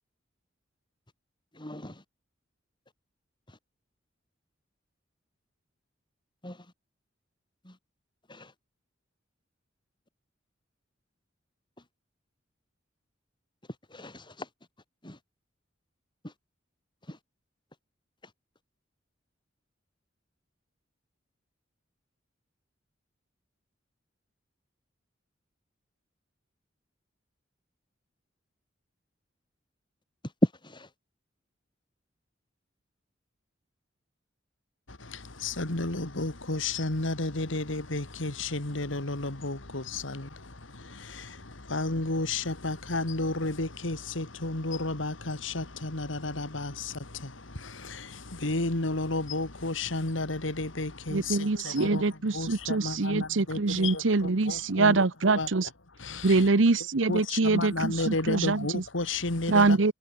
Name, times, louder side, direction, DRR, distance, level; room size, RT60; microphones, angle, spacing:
voice 1, 1.6-2.0 6.4-6.6 7.6-7.7 8.3-8.5 13.9-14.5 15.0-15.2 16.2-16.3 17.1-17.2 30.4-30.9, equal, 25° left, 7.5 m, -32 dB
voice 2, 34.9-55.0 55.3-55.5 56.0-56.5 57.1-59.8, left 2 dB, 85° left, 2.6 m, -32 dB
voice 3, 51.1-55.7 56.2-58.8 59.5-59.9, right 3 dB, 80° right, 1.0 m, -24 dB
head